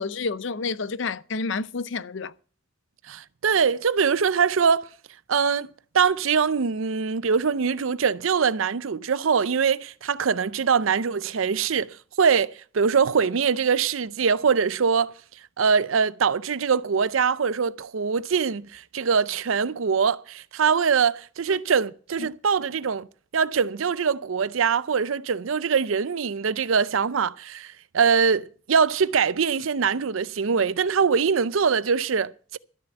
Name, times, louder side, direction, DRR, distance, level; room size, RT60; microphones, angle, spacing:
voice 1, 0.0-2.3 21.5-21.6 22.2-22.3, left 4 dB, 65° left, 0.6 m, -29 dB
voice 2, 3.1-4.9 5.3-5.7 5.9-15.1 15.6-23.1 23.3-32.6, right 6 dB, 90° right, 0.6 m, -23 dB
13.0 x 6.9 x 7.9 m
head